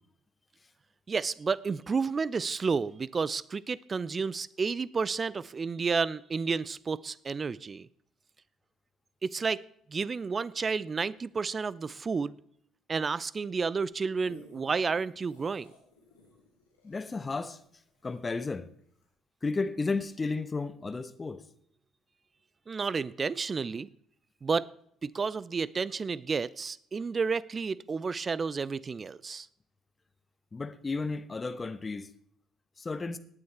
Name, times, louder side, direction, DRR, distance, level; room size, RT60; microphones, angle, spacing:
voice 1, 1.1-7.9 9.2-9.6 9.9-12.4 12.9-15.7 22.7-23.9 24.4-24.7 25.0-29.5, right 5 dB, 35° right, 0.6 m, -31 dB
sound 1, 13.9-18.5 19.0-19.1, left 3 dB, 80° left, 2.7 m, -57 dB
voice 2, 16.8-17.6 18.0-18.7 19.4-21.4 30.5-32.1 32.8-33.2, left 3 dB, 25° left, 1.1 m, -33 dB
18.0 x 9.5 x 4.3 m
figure-of-eight pair, 50°, 0 cm